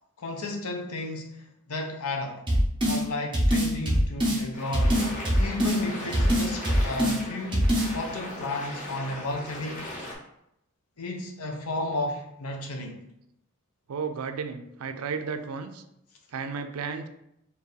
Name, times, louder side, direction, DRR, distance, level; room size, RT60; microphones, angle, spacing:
voice 1, 0.2-2.4 2.8-9.9 11.0-13.0, left 2 dB, 85° left, 3 dB, 0.8 m, -33 dB
sound 1, 2.5-3.0 3.3-4.4 4.7-5.8 6.1-7.2 7.5-7.9, equal, 20° right, 1.0 m, -22 dB
sound 2, 4.5-10.1, left 1 dB, 35° left, 1.0 m, -38 dB
voice 2, 13.9-15.8 16.3-17.1, right 5 dB, 80° right, 8 dB, 0.4 m, -33 dB
4.5 x 2.7 x 3.2 m, 0.81 s
head